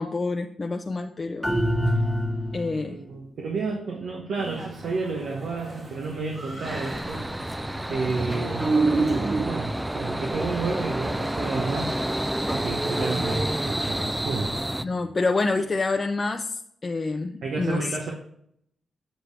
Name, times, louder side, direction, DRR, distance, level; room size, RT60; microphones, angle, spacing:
voice 1, 0.0-1.6 2.5-3.0 13.2-13.4 14.8-18.0, left 3 dB, 40° left, 4 dB, 0.5 m, -27 dB
sound 1, 1.4-2.9, equal, 10° left, 0.9 m, -25 dB
voice 2, 2.8-7.2 7.9-11.9 12.5-14.6 17.4-18.1, right 4 dB, 75° right, 0 dB, 1.1 m, -31 dB
sound 2, 4.4-9.5, right 3 dB, 45° right, 2.0 m, -29 dB
sound 3, 6.6-14.9, right 1 dB, 10° right, 0.4 m, -29 dB
7.8 x 6.5 x 3.3 m, 0.70 s
cardioid pair, 60°, 0 cm